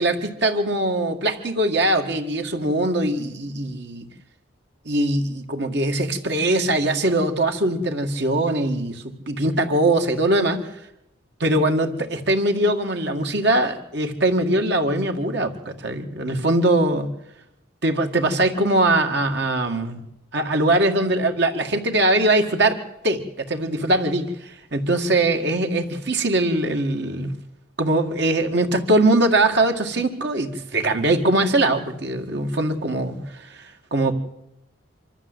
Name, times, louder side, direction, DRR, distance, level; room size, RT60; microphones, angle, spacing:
voice 1, 0.0-4.1 4.9-10.7 11.4-17.1 17.8-20.0 20.3-22.8 23.0-27.4 27.8-34.1, right 1 dB, 55° right, 4 dB, 2.1 m, -21 dB
25.5 x 13.0 x 8.1 m, 0.85 s
head